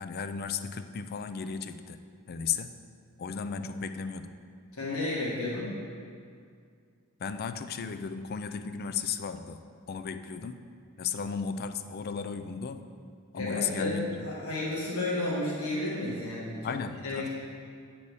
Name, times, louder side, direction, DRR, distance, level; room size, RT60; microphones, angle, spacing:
voice 1, 0.0-2.0 2.3-2.7 3.2-4.3 7.2-10.7 11.0-12.9 13.3-14.3 16.6-17.3, left 6 dB, 45° left, 9 dB, 0.4 m, -35 dB
voice 2, 4.7-5.7 13.3-16.8 17.0-17.3, left 2 dB, 70° left, -7 dB, 1.8 m, -32 dB
8.1 x 4.2 x 6.9 m, 2.2 s
head